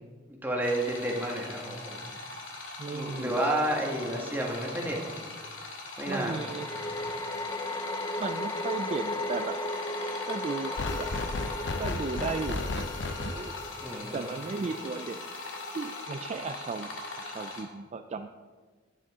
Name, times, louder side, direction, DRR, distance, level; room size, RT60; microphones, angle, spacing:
voice 1, 0.4-2.1 2.9-5.2 6.0-6.4 6.9-7.0 13.8-14.3, right 1 dB, 10° right, -1 dB, 1.4 m, -31 dB
sound 1, 0.6-17.6, left 2 dB, 85° left, 2.0 m, -41 dB
voice 2, 2.8-3.4 6.1-6.7 8.2-9.6 10.3-11.1 11.8-12.9 13.2-13.5 14.1-15.2 15.7-16.9 17.2-18.3, right 4 dB, 35° right, 7 dB, 0.3 m, -35 dB
sound 2, 3.1-3.2 6.1-17.4, left 2 dB, 20° left, 0.5 m, -37 dB
sound 3, 10.7-16.1, left 3 dB, 65° left, 0.6 m, -36 dB
9.9 x 9.3 x 3.6 m, 1.4 s
head